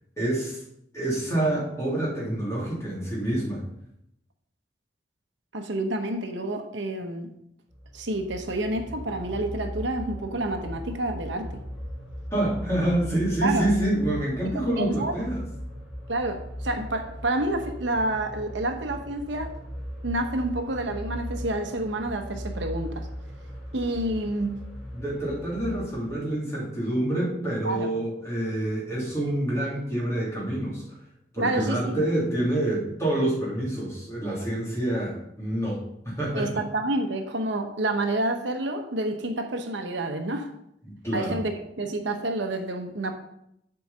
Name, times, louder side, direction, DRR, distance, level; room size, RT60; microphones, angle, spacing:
voice 1, 0.2-0.6 0.9-3.6 12.3-15.4 24.9-30.8 31.3-36.5 40.8-41.4, right 1 dB, 15° left, -5 dB, 2.7 m, -27 dB
voice 2, 5.5-7.3 7.9-11.6 13.4-13.7 14.5-15.1 16.1-19.5 20.0-23.1 23.7-24.6 27.6-27.9 31.4-32.0 36.3-40.5 41.1-43.1, right 1 dB, 80° right, 5 dB, 0.9 m, -29 dB
sound 1, 7.7-26.1, equal, ahead, 3.2 m, -38 dB
7.7 x 4.7 x 5.4 m, 0.77 s
head